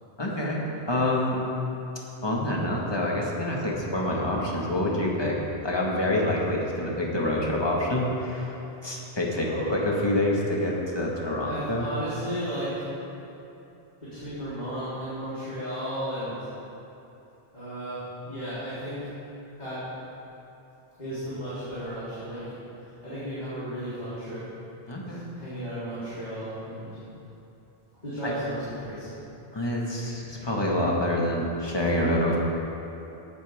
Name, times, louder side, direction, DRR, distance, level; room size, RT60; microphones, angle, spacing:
voice 1, 0.2-1.4 2.2-5.4 5.6-8.5 8.8-11.9 24.9-25.3 28.2-28.3 29.5-32.4, left 1 dB, 25° left, -3 dB, 1.9 m, -27 dB
voice 2, 9.5-9.8 11.4-12.7 14.0-16.4 17.5-19.0 19.6-19.8 21.0-22.5 23.0-24.4 25.1-26.9 28.0-29.2, equal, 45° left, -14 dB, 4.0 m, -34 dB
17.5 x 11.5 x 3.7 m, 2.9 s
omnidirectional pair, 1.0 m